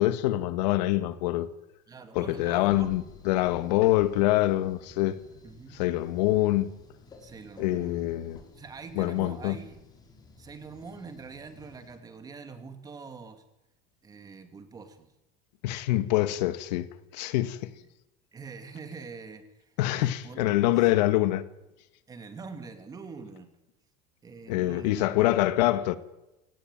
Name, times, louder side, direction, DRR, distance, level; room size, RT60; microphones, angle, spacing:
voice 1, 0.0-1.5 2.2-5.2 5.7-6.7 7.6-8.4 9.0-9.6 15.6-16.9 17.1-17.7 19.8-21.4 24.5-26.0, left 16 dB, 85° left, 1.9 m, -25 dB
voice 2, 1.9-3.0 5.4-5.8 7.2-8.0 8.5-9.8 10.4-13.4 14.0-15.1 18.3-20.6 22.1-23.5 24.2-25.3, right 4 dB, 20° right, 2.5 m, -44 dB
sound 1, 2.7-12.0, left 3 dB, 20° left, 4.7 m, -53 dB
29.0 x 18.0 x 9.1 m
cardioid pair, 160°, 21 cm